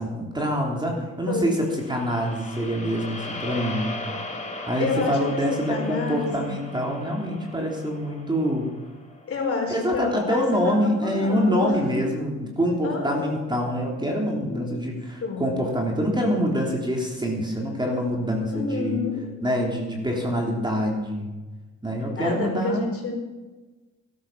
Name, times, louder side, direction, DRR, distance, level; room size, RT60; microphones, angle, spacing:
voice 1, 0.0-3.9 4.7-8.7 9.7-19.0 19.4-21.3 21.8-23.0, equal, 15° right, -1 dB, 3.6 m, -25 dB
sound 1, 1.6-9.9, left 2 dB, 25° left, 2.8 m, -38 dB
voice 2, 4.8-6.7 9.3-12.2 12.8-13.4 14.4-14.6 15.2-15.5 18.5-19.2 22.2-23.2, left 4 dB, 50° left, 1 dB, 4.8 m, -29 dB
13.0 x 13.0 x 5.8 m, 1.2 s
cardioid pair, 90°, 30 cm